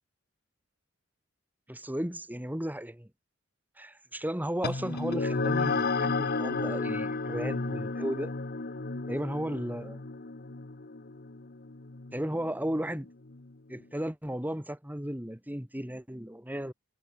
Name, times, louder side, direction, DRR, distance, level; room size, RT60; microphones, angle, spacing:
voice 1, 1.7-3.1 3.8-8.3 9.1-10.0 12.1-13.1 13.7-16.7, right 1 dB, 10° right, 2.2 m, -34 dB
sound 1, 4.6-13.5, left 3 dB, 50° left, 1.2 m, -33 dB
head